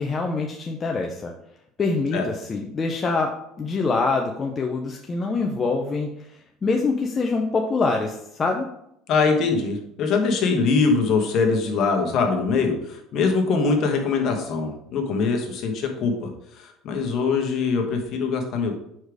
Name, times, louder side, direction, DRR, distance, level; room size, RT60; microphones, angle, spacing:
voice 1, 0.0-1.3 1.8-6.3 6.6-8.7, left 3 dB, 25° left, 2 dB, 0.6 m, -25 dB
voice 2, 9.1-18.8, left 4 dB, 50° left, 3 dB, 1.3 m, -23 dB
4.9 x 4.4 x 4.7 m, 0.78 s
cardioid pair, 125°, 0 cm